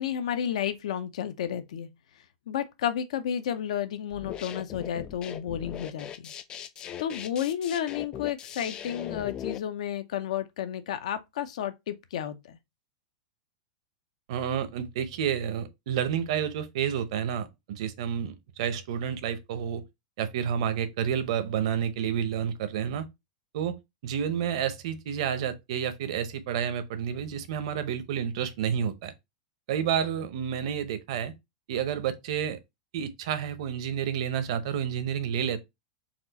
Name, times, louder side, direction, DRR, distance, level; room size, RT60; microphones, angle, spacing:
voice 1, 0.0-1.9 2.5-6.3 7.0-12.6, left 9 dB, 75° left, 0.7 m, -32 dB
sound 1, 4.1-9.6, left 10 dB, 25° left, 0.3 m, -39 dB
voice 2, 14.3-19.8 20.2-23.1 23.5-23.7 24.0-29.1 29.7-31.3 31.7-32.6 32.9-35.6, right 8 dB, 60° right, 0.7 m, -30 dB
4.3 x 2.4 x 4.0 m
supercardioid pair, 160°, 4 cm